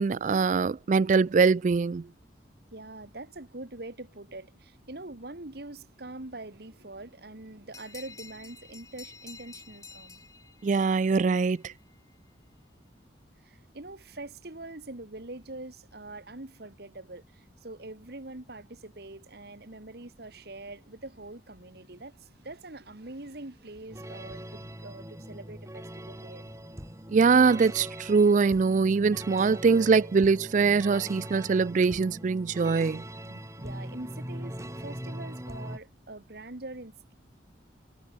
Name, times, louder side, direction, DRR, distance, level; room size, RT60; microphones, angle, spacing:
voice 1, 0.0-2.0 10.6-11.7 27.1-33.0, right 4 dB, 40° right, 0.3 m, -23 dB
voice 2, 2.7-10.2 13.4-26.4 33.6-37.1, right 2 dB, 60° right, 1.8 m, -44 dB
sound 1, 7.7-12.0, left 4 dB, 20° left, 4.6 m, -50 dB
sound 2, 23.9-35.8, right 1 dB, 15° right, 3.4 m, -41 dB
head